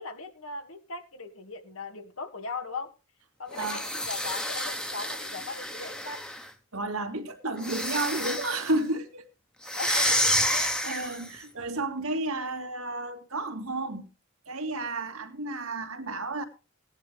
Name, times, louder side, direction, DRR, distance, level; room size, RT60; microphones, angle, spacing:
voice 1, 0.0-2.9 3.4-6.3 9.8-10.8, left 3 dB, 80° left, 2.3 m, -39 dB
sound 1, 3.5-6.5 7.6-8.7 9.6-11.4, left 1 dB, 5° left, 1.1 m, -29 dB
voice 2, 6.7-9.2 9.8-14.1 14.5-16.4, right 2 dB, 90° right, 2.4 m, -32 dB
18.0 x 10.5 x 3.4 m
head